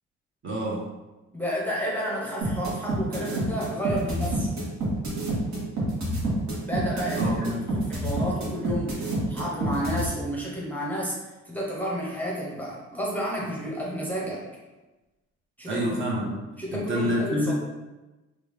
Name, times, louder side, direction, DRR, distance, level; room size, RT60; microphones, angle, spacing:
voice 1, 0.4-0.9 7.2-7.7 15.7-16.4 16.7-17.5, equal, 40° right, -4 dB, 1.1 m, -27 dB
voice 2, 1.3-4.5 6.7-9.0 9.3-11.2 11.5-14.5 15.6-15.8 16.6-17.5, equal, 5° left, -4 dB, 0.7 m, -31 dB
sound 1, 2.4-10.0, right 1 dB, 65° right, 1.3 m, -28 dB
3.3 x 2.4 x 3.4 m, 1.1 s
cardioid pair, 90°, 30 cm